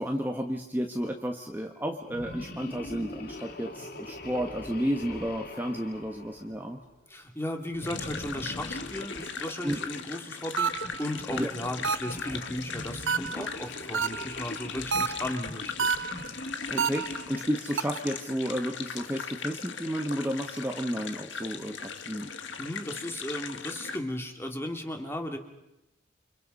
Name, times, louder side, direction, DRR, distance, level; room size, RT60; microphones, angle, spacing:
voice 1, 0.0-6.8 9.6-9.8 11.3-11.5 16.7-22.3, equal, 10° right, 2 dB, 1.4 m, -32 dB
sound 1, 2.1-6.9 7.8-10.1 10.7-17.5, left 1 dB, 50° left, 2.4 m, -42 dB
voice 2, 7.1-10.7 11.0-15.9 22.6-25.4, left 1 dB, 10° left, 4 dB, 2.6 m, -35 dB
sound 2, 7.8-24.0, left 6 dB, 70° left, 1.7 m, -39 dB
sound 3, 10.6-11.0 11.8-12.3 13.1-13.5 13.9-14.4 14.9-15.4 15.8-16.3 16.8-17.2 17.8-18.2, right 6 dB, 75° right, 0.8 m, -29 dB
29.5 x 26.0 x 5.5 m, 0.91 s
head